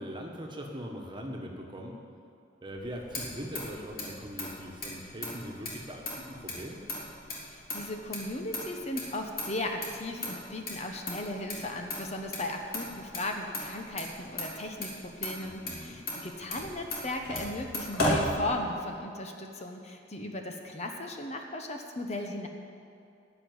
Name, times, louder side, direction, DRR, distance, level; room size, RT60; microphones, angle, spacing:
voice 1, 0.0-1.9 2.6-6.8 15.4-16.0, equal, 25° right, 0 dB, 1.5 m, -41 dB
Motor vehicle (road), 2.7-19.0, left 1 dB, 50° left, 2.9 m, -37 dB
voice 2, 7.5-22.5, left 1 dB, 35° left, 3 dB, 1.0 m, -36 dB
14.0 x 6.3 x 9.7 m, 2.6 s
head